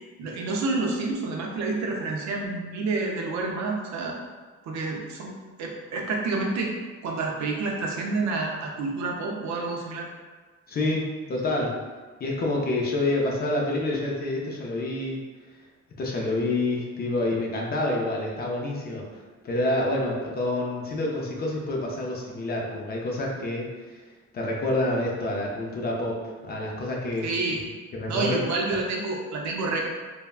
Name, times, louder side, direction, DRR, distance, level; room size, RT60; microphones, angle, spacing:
voice 1, 0.2-4.2 4.7-5.3 5.6-6.8 7.0-10.1 27.2-27.6 28.1-29.8, right 3 dB, 75° right, 0 dB, 0.5 m, -28 dB
voice 2, 10.7-11.8 12.2-15.2 16.0-19.1 19.4-23.7 24.3-27.6 27.9-28.4, left 2 dB, 35° left, -2 dB, 0.4 m, -28 dB
3.3 x 2.0 x 2.3 m, 1.4 s
cardioid pair, 170°, 29 cm